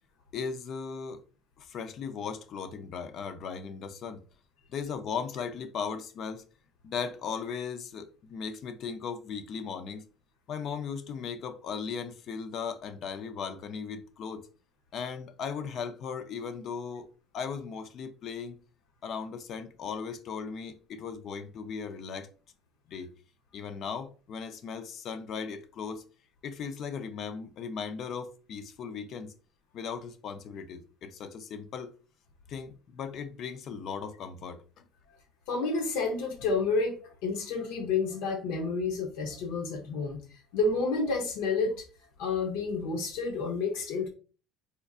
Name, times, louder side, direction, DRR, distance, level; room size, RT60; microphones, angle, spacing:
voice 1, 0.3-1.2 1.6-4.2 4.7-6.4 6.8-10.0 10.5-14.5 14.9-17.1 17.3-18.6 19.0-22.3 22.9-23.1 23.5-26.0 26.4-29.3 29.7-31.9 32.5-34.8, left 6 dB, 40° left, 0.4 m, -37 dB
voice 2, 35.5-40.2 40.5-41.8 42.2-44.1, left 4 dB, 85° left, 0.7 m, -30 dB
4.3 x 2.5 x 2.3 m
cardioid pair, 175°, 0 cm